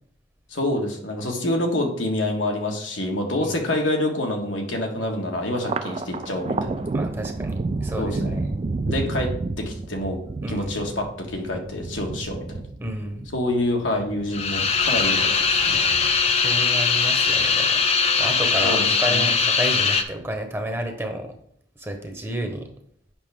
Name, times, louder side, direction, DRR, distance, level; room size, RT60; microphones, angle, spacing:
voice 1, 0.5-6.8 8.0-8.3 8.9-9.3 9.6-10.2 10.5-12.6 13.3-15.8 18.6-19.3, left 1 dB, 90° left, 1 dB, 1.5 m, -27 dB
Thunder, 5.6-18.2 18.6-19.4 19.8-20.6, right 3 dB, 30° right, 0.3 m, -31 dB
voice 2, 6.9-8.5 10.4-10.7 12.8-13.3 16.3-17.8 18.2-21.3 21.8-22.7, equal, 10° right, 4 dB, 0.9 m, -31 dB
sound 1, 14.3-20.0, left 5 dB, 35° left, 0.6 m, -21 dB
7.6 x 5.8 x 3.5 m, 0.68 s
head